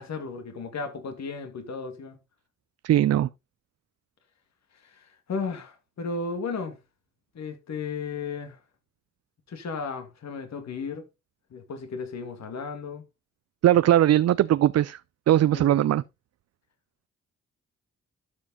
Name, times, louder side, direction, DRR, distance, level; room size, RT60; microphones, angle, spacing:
voice 1, 0.0-2.2 4.8-6.8 7.3-8.6 9.5-11.1 11.5-13.0 15.5-15.8, left 4 dB, 65° left, 2.3 m, -34 dB
voice 2, 2.8-3.3 13.6-15.0 15.3-16.0, right 12 dB, 60° right, 0.5 m, -20 dB
12.0 x 5.1 x 4.0 m
supercardioid pair, 45°, 30 cm